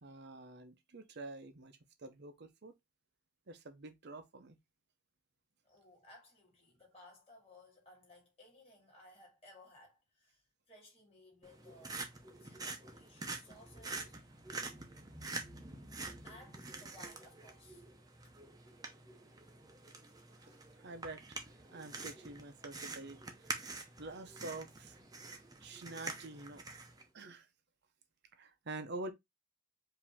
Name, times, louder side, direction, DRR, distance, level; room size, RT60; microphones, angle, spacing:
voice 1, 0.0-2.7 3.5-4.6 20.8-21.4 21.7-23.7 24.0-25.0 25.6-26.6 27.1-27.5 28.4-29.1, right 2 dB, 50° right, 0.7 m, -47 dB
voice 2, 5.6-10.4 10.7-14.2 16.2-17.8 18.2-18.3, left 1 dB, 25° left, 2.3 m, -60 dB
sound 1, 11.4-27.0, right 3 dB, 15° right, 0.7 m, -47 dB
4.9 x 2.8 x 3.5 m
head